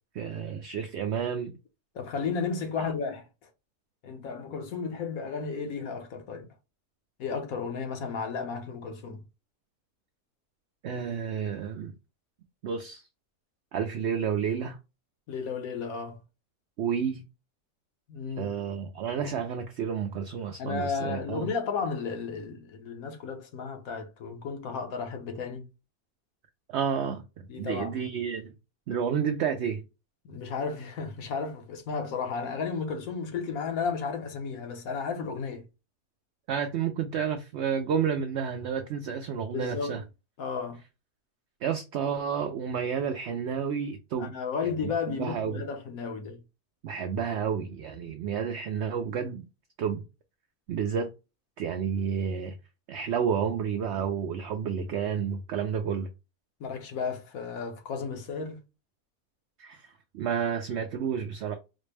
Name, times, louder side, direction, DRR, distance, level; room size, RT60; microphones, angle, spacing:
voice 1, 0.1-1.5 10.8-11.9 12.6-13.1 13.7-14.8 16.8-17.3 18.4-21.5 26.7-28.5 28.9-29.8 36.5-40.0 41.6-44.3 44.6-45.6 46.8-49.4 49.8-50.0 50.7-51.1 51.6-52.6 52.9-56.1 59.6-61.5, right 7 dB, 70° right, 0.6 m, -30 dB
voice 2, 1.9-3.5 4.0-6.5 7.2-9.2 15.3-16.2 18.1-18.5 20.6-25.7 27.5-28.0 30.2-35.6 39.5-40.0 40.4-40.8 44.2-46.4 56.6-58.6, left 5 dB, 70° left, 1.2 m, -33 dB
4.2 x 2.1 x 3.2 m
omnidirectional pair, 1.6 m